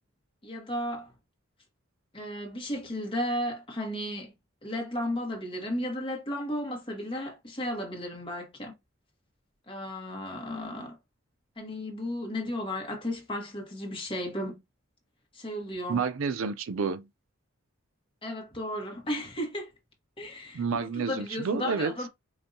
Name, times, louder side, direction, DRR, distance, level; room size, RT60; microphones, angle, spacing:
voice 1, 0.4-1.1 2.1-4.3 4.6-8.7 9.7-11.0 11.6-14.6 15.3-16.0 18.2-19.7 20.2-20.6 20.9-22.1, left 1 dB, 25° left, 1.2 m, -34 dB
voice 2, 15.9-17.0 20.5-21.9, right 5 dB, 70° right, 0.5 m, -29 dB
4.9 x 2.6 x 2.7 m
head